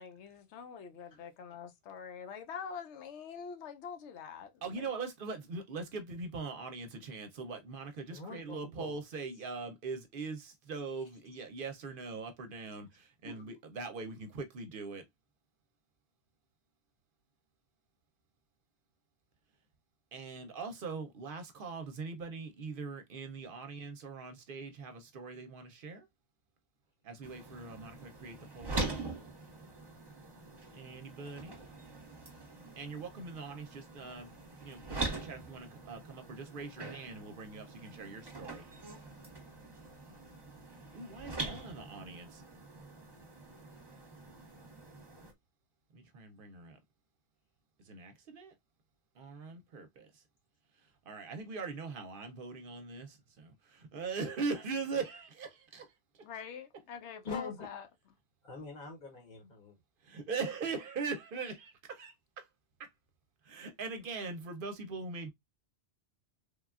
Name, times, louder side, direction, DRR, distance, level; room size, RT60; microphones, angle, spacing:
voice 1, 0.0-4.9 54.6-54.7 56.2-57.8, left 7 dB, 85° left, 0.9 m, -45 dB
voice 2, 4.6-15.1 20.1-26.1 27.0-28.9 30.7-31.5 32.8-34.3 34.6-38.6 40.9-42.4 45.9-46.8 47.9-48.5 49.2-50.1 51.1-55.9 60.0-62.4 62.8-62.9 63.5-65.3, right 4 dB, 60° right, 0.7 m, -41 dB
voice 3, 8.1-9.0 9.3-9.4 10.9-11.0 13.2-13.5 57.2-57.7 58.4-59.8, left 4 dB, 50° left, 0.9 m, -44 dB
sound 1, 27.2-45.3, right 3 dB, 25° right, 0.8 m, -43 dB
3.2 x 2.2 x 2.3 m
omnidirectional pair, 1.1 m